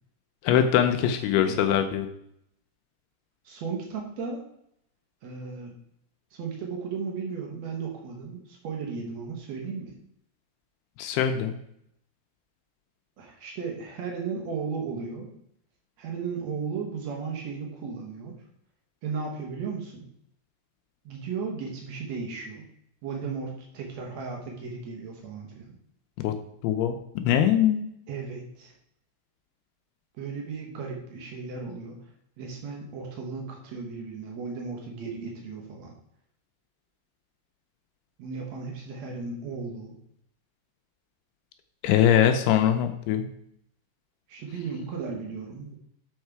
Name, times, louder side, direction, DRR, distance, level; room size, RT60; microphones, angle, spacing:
voice 1, 0.4-2.1 11.0-11.6 26.2-26.3 26.6-27.8 41.8-43.3, left 9 dB, 80° left, 6 dB, 2.4 m, -22 dB
voice 2, 1.0-1.8 3.4-4.4 5.2-5.7 6.3-9.9 13.2-15.3 16.0-18.3 19.0-20.0 21.0-22.6 23.0-25.8 28.1-28.7 30.1-32.0 32.4-35.9 38.2-40.0 44.3-45.8, right 5 dB, 85° right, 0 dB, 1.5 m, -35 dB
7.3 x 5.4 x 4.6 m, 0.72 s
omnidirectional pair, 4.9 m